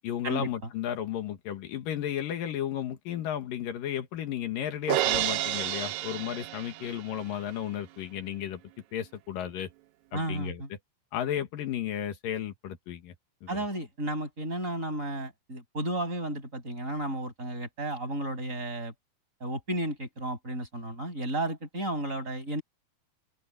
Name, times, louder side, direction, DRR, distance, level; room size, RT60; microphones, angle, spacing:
voice 1, 0.0-8.6 8.9-9.7 10.1-10.6 11.1-13.1 13.4-13.6, left 10 dB, 80° left, 3.2 m, -34 dB
Crash cymbal, 4.9-7.2, right 14 dB, 75° right, 1.9 m, -30 dB
voice 2, 10.1-10.7 13.5-18.9 19.4-22.6, right 1 dB, 20° right, 7.6 m, -33 dB
open air
omnidirectional pair, 3.9 m